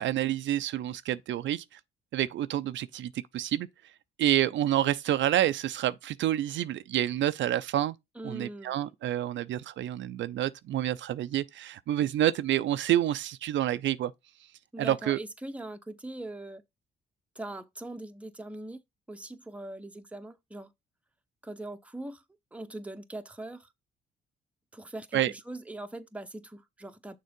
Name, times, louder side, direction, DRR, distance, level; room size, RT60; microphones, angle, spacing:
voice 1, 0.0-1.8 2.1-3.7 4.2-8.0 8.2-14.1 14.8-15.2 25.1-25.3, right 12 dB, 70° right, 0.5 m, -28 dB
voice 2, 8.1-8.9 14.7-16.6 17.3-18.8 19.1-20.7 21.4-22.2 22.5-23.7 24.7-27.2, right 1 dB, 5° right, 0.8 m, -41 dB
6.6 x 3.7 x 5.1 m
cardioid pair, 90°, 20 cm